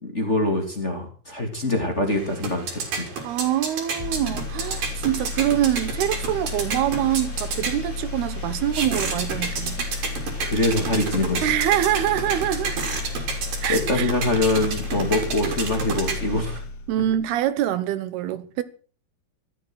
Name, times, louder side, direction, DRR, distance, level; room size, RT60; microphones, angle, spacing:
voice 1, 0.0-3.2 10.4-11.5 13.7-16.6 17.0-17.1, left 2 dB, 20° left, 2.6 m, -24 dB
sound 1, 2.1-16.6, right 4 dB, 60° right, 5.1 m, -31 dB
voice 2, 3.2-9.9 11.4-12.8 13.6-14.1 16.9-18.6, right 12 dB, 80° right, 3.2 m, -25 dB
sound 2, 4.0-17.4, left 4 dB, 55° left, 2.7 m, -33 dB
15.5 x 13.0 x 6.4 m
omnidirectional pair, 4.5 m